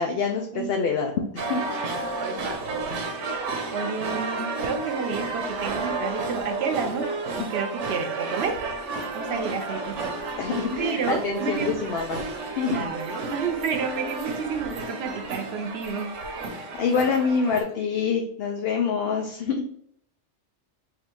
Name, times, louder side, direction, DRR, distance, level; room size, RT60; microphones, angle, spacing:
voice 1, 0.0-1.6 10.4-12.2 12.6-12.9 16.8-19.7, left 5 dB, 65° left, 2 dB, 0.7 m, -26 dB
sound 1, 1.4-17.6, right 3 dB, 85° right, 1.1 m, -32 dB
voice 2, 1.8-7.1 7.4-8.6 9.1-10.1 10.8-11.7 12.7-16.1, right 5 dB, 65° right, 7 dB, 0.8 m, -31 dB
3.5 x 2.4 x 4.4 m, 0.66 s
omnidirectional pair, 1.2 m